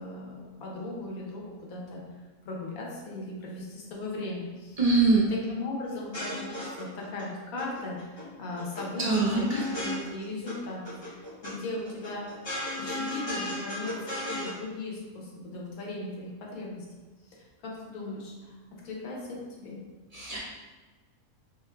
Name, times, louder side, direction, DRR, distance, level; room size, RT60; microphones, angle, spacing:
voice 1, 0.0-2.0 2.4-4.8 5.3-12.3 12.8-16.8 17.2-19.8, left 2 dB, 85° left, -2 dB, 1.2 m, -38 dB
voice 2, 4.8-5.3 9.0-9.6 20.1-20.4, right 3 dB, 55° right, -7 dB, 0.4 m, -23 dB
sound 1, 5.9-7.2 7.6-8.2 8.5-10.5 10.8-11.5 11.9-14.5, left 1 dB, 25° left, 0.8 m, -35 dB
3.5 x 2.9 x 2.3 m, 1.3 s
omnidirectional pair, 1.5 m